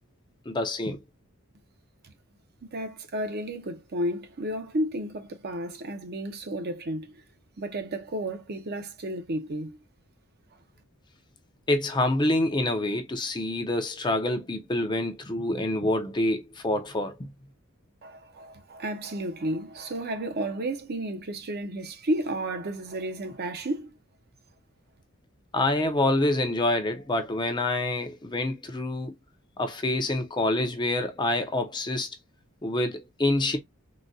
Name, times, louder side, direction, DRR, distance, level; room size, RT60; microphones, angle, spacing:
voice 1, 0.5-1.0 11.7-17.3 25.5-29.1 29.6-32.1 32.6-33.6, left 2 dB, 20° left, 0.5 m, -27 dB
voice 2, 2.6-7.2 7.6-9.8 18.0-24.0, right 1 dB, 50° right, 0.7 m, -32 dB
3.9 x 2.2 x 2.5 m
head